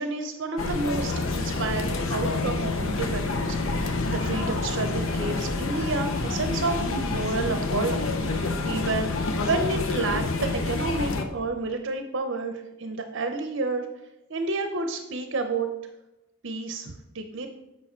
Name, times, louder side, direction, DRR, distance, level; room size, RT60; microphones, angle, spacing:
voice 1, 0.0-9.1 9.5-13.9 14.3-15.7 16.4-17.5, right 3 dB, 65° right, 6 dB, 0.7 m, -30 dB
sound 1, 0.6-11.2, left 3 dB, 75° left, 0.9 m, -28 dB
8.3 x 5.9 x 4.4 m, 0.94 s
head